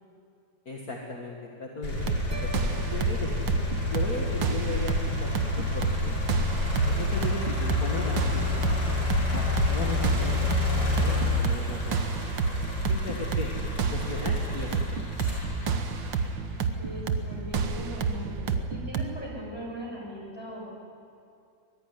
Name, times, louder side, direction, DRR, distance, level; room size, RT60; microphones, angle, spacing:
voice 1, 0.7-3.3 3.9-5.0 5.2-5.3 5.6-6.2 6.8-8.9 9.3-12.4 12.9-13.5 13.9-14.7, left 3 dB, 50° left, -1 dB, 2.5 m, -37 dB
sound 1, 1.8-16.9 17.5-18.7, left 2 dB, 75° left, 7.5 m, -29 dB
sound 2, 1.9-19.0, right 6 dB, 75° right, 2.0 m, -30 dB
sound 3, 2.3-4.6, right 3 dB, 45° right, 2.4 m, -46 dB
voice 2, 16.8-18.3 18.7-20.7, equal, 10° left, -1 dB, 7.0 m, -39 dB
24.5 x 20.0 x 9.8 m, 2.5 s
omnidirectional pair, 2.0 m